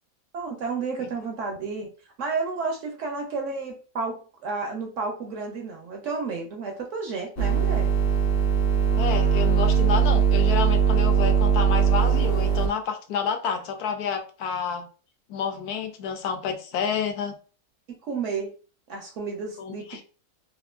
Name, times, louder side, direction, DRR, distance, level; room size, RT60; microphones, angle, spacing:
voice 1, 0.3-1.9 2.2-7.9 18.0-18.5 18.9-20.0, right 4 dB, 70° right, 2 dB, 0.8 m, -31 dB
sound 1, 7.4-12.7, right 7 dB, 55° left, 0.7 m, -20 dB
voice 2, 9.0-14.8 15.3-17.4 19.6-20.0, left 6 dB, 80° left, 5 dB, 1.1 m, -29 dB
2.8 x 2.4 x 2.3 m, 0.37 s
omnidirectional pair, 1.6 m